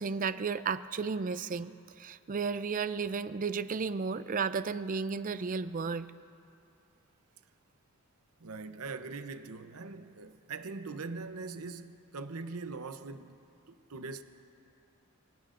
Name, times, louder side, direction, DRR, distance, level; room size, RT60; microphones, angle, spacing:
voice 1, 0.0-1.7 2.0-6.1, right 5 dB, 35° right, 0.4 m, -33 dB
voice 2, 8.4-13.4 13.7-14.2, right 3 dB, 75° right, 0.7 m, -42 dB
29.0 x 18.0 x 2.5 m
head